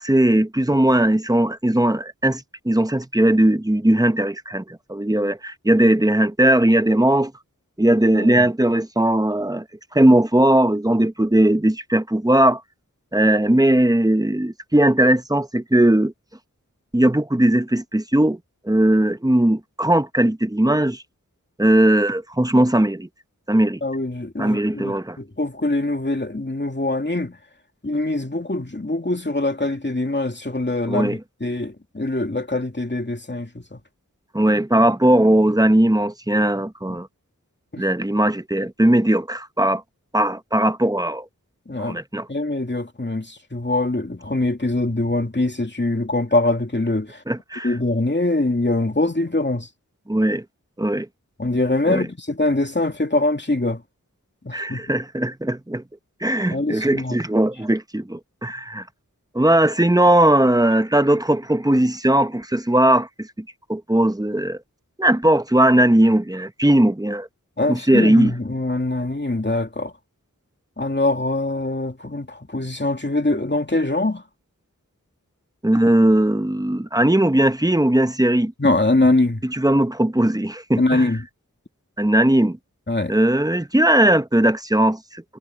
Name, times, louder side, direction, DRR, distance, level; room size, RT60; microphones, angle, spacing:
voice 1, 0.0-7.3 7.8-9.6 9.9-12.6 13.1-16.1 16.9-18.4 18.6-21.0 21.6-23.1 23.5-23.8 24.4-25.2 30.9-31.2 34.3-37.1 37.8-39.8 40.1-41.3 41.8-42.3 47.3-47.8 50.1-50.4 50.8-51.1 51.9-52.1 54.5-55.8 56.2-58.8 59.3-63.3 63.7-64.6 65.0-67.3 67.7-68.3 75.6-78.5 79.4-81.1 82.0-82.6 83.1-85.2, right 1 dB, 10° right, 1.0 m, -18 dB
voice 2, 8.1-8.5 23.8-27.4 27.8-33.8 37.7-37.8 41.7-42.0 42.3-47.2 47.6-49.7 51.4-53.8 54.4-55.0 56.5-57.2 67.6-69.9 70.8-74.2 78.6-79.4 80.8-81.2 82.9-83.1, left 2 dB, 35° left, 2.5 m, -23 dB
wide cardioid pair, 45°, 33 cm